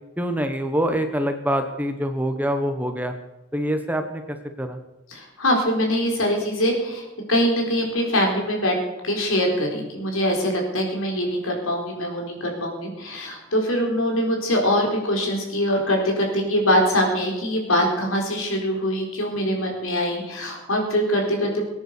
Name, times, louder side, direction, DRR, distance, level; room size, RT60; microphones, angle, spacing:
voice 1, 0.2-3.1 3.5-4.2 4.6-4.8, equal, 10° right, 6 dB, 1.0 m, -25 dB
voice 2, 5.1-8.8 9.0-21.6, equal, 85° left, 1 dB, 4.3 m, -23 dB
19.5 x 9.8 x 6.7 m, 1.0 s
head